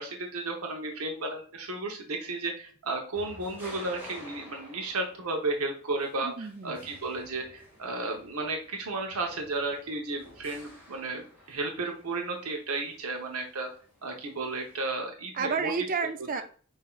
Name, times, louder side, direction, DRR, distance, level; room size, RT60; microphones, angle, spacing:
voice 1, 0.0-13.7 14.0-15.7, right 2 dB, 80° right, 2 dB, 0.8 m, -33 dB
sound 1, 3.1-14.8, left 1 dB, 10° right, 1.8 m, -51 dB
voice 2, 6.2-6.9 15.3-16.4, right 5 dB, 40° right, 9 dB, 0.4 m, -31 dB
5.6 x 2.7 x 2.3 m, 0.43 s
head